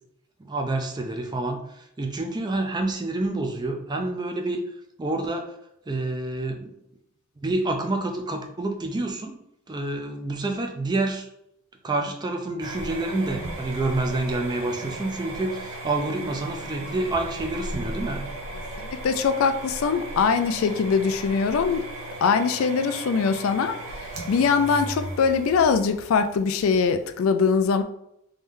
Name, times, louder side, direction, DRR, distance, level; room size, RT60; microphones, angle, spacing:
voice 1, 0.4-4.6 5.0-5.5 5.9-6.7 7.4-9.4 9.7-11.3 11.8-18.3, right 2 dB, 20° right, 4 dB, 0.4 m, -28 dB
sound 1, 12.6-27.1, right 1 dB, 75° right, 0.9 m, -36 dB
voice 2, 18.8-21.8 22.2-23.8 24.3-27.8, left 5 dB, 75° left, 9 dB, 0.3 m, -22 dB
3.2 x 2.6 x 3.6 m, 0.77 s
head